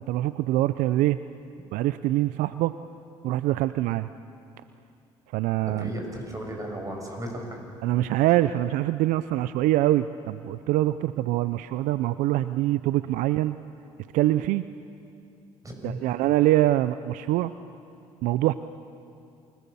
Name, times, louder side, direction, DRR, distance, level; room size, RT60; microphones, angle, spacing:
voice 1, 0.1-1.2 1.7-2.7 3.2-4.1 5.3-5.9 7.8-13.6 14.1-14.6 15.8-17.5 18.2-18.5, right 15 dB, 75° right, 14 dB, 0.5 m, -24 dB
voice 2, 5.8-7.7 15.6-16.0, right 1 dB, 25° right, 2 dB, 7.1 m, -35 dB
28.5 x 18.5 x 7.0 m, 2.5 s
supercardioid pair, 65°, 14 cm